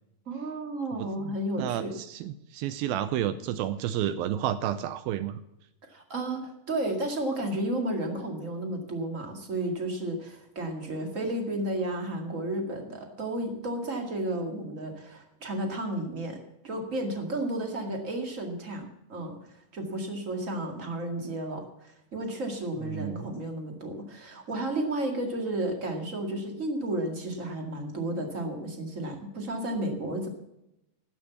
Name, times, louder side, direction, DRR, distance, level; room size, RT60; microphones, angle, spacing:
voice 1, 0.2-1.9 5.9-30.3, right 1 dB, 30° right, 3 dB, 1.5 m, -32 dB
voice 2, 1.0-5.4 22.8-23.3, right 11 dB, 80° right, 13 dB, 2.3 m, -31 dB
13.0 x 8.1 x 7.1 m, 0.87 s
omnidirectional pair, 4.4 m